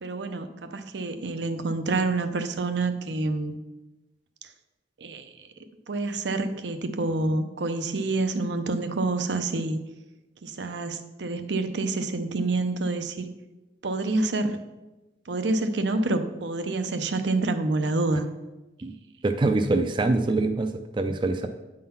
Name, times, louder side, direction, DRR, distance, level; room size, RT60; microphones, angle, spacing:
voice 1, 0.0-3.6 5.0-5.3 5.9-9.8 10.4-13.3 13.8-14.6 15.3-18.3, right 2 dB, 80° right, 8 dB, 0.6 m, -27 dB
voice 2, 19.2-21.5, right 2 dB, 25° right, 7 dB, 0.3 m, -24 dB
8.6 x 3.8 x 5.6 m, 1.1 s
head